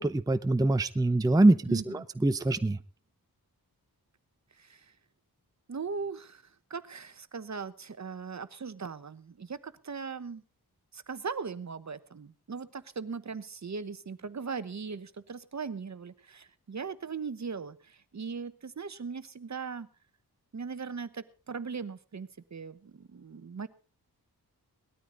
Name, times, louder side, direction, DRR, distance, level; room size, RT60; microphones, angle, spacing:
voice 1, 0.0-2.8, right 2 dB, 10° right, 11 dB, 0.6 m, -24 dB
voice 2, 1.7-2.0 4.6-4.9 5.7-10.4 10.9-19.9 20.5-23.7, right 5 dB, 45° right, 13 dB, 1.1 m, -39 dB
19.0 x 13.0 x 3.9 m, 0.35 s
wide cardioid pair, 115°, 39 cm